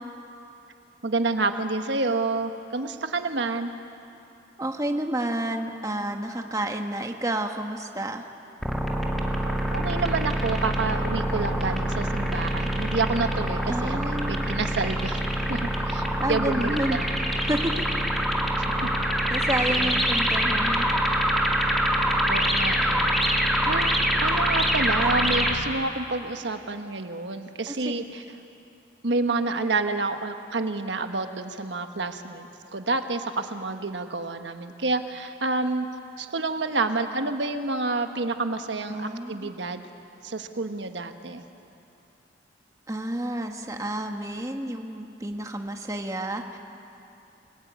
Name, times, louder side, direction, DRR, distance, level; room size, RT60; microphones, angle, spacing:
voice 1, 1.0-3.7 9.4-15.2 15.5-17.1 18.7-19.0 19.7-20.0 22.3-23.1 23.7-23.9 24.2-28.2 29.0-32.5 32.7-35.9 36.2-39.9 40.2-41.4, right 3 dB, 85° right, 7 dB, 1.4 m, -29 dB
voice 2, 4.6-8.3 13.7-14.5 16.2-17.0 17.5-17.8 19.3-20.9 27.7-28.0 38.9-39.5 42.9-46.6, right 1 dB, 20° right, 4 dB, 1.4 m, -30 dB
sound 1, 8.6-25.5, equal, ahead, 2.2 m, -25 dB
28.5 x 19.0 x 9.4 m, 2.8 s
head